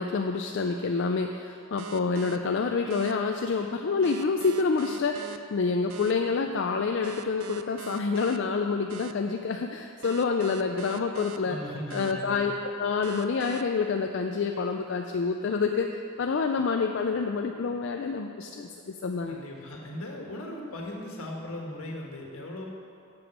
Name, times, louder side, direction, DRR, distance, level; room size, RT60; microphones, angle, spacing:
voice 1, 0.0-11.6 11.9-12.5 12.8-15.9 16.2-19.4, left 4 dB, 55° left, 4 dB, 0.4 m, -27 dB
sound 1, 1.8-2.4 2.9-3.1 4.0-5.4 5.9-6.1 7.0-8.4 8.9-9.1 10.0-11.4 11.9-12.1 13.0-13.6, right 6 dB, 75° right, 0.5 m, -41 dB
voice 2, 11.4-12.4 19.3-22.7, left 1 dB, 75° left, 0 dB, 1.5 m, -38 dB
8.0 x 7.0 x 6.0 m, 2.5 s
head